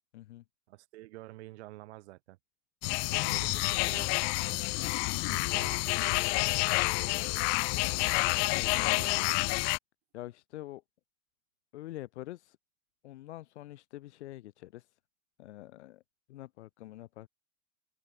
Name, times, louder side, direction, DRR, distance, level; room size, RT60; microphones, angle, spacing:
voice 1, 0.1-0.4 8.6-9.3 10.1-10.8 11.7-12.6 13.0-15.0 15.4-16.0 16.3-17.3, left 15 dB, 75° left, 2.0 m, -46 dB
voice 2, 0.7-2.4 2.8-4.6 5.2-6.5 8.7-9.4, right 18 dB, 70° right, 3.2 m, -48 dB
sound 1, 2.8-9.8, left 37 dB, 45° left, 0.4 m, -29 dB
sound 2, 3.8-9.5, left 3 dB, 10° left, 2.1 m, -55 dB
open air
hypercardioid pair, 100°, 34 cm